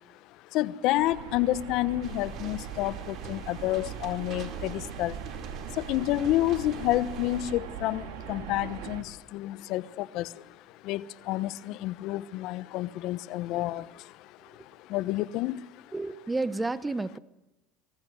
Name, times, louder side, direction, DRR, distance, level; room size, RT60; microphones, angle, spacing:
voice 1, 0.5-5.1 5.8-9.0 9.3-10.3 10.9-13.8 14.9-15.6, left 15 dB, 65° left, 1.0 m, -29 dB
sound 1, 0.9-9.0, right 9 dB, 75° right, 2.4 m, -41 dB
sound 2, 2.0-7.5, right 6 dB, 55° right, 4.4 m, -43 dB
voice 2, 15.9-17.2, right 3 dB, 15° right, 1.2 m, -30 dB
25.0 x 21.0 x 8.0 m
supercardioid pair, 90°, 0 cm